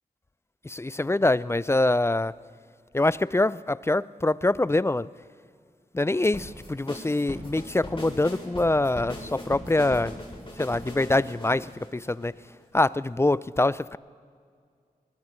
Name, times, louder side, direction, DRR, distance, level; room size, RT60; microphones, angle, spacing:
voice 1, 0.6-2.3 2.9-5.1 5.9-10.2 10.6-12.3 12.7-14.0, left 2 dB, 15° left, 19 dB, 0.3 m, -24 dB
sound 1, 6.3-12.6, left 1 dB, 35° left, 3.3 m, -39 dB
22.5 x 20.0 x 3.1 m, 2.2 s
cardioid pair, 45°, 16 cm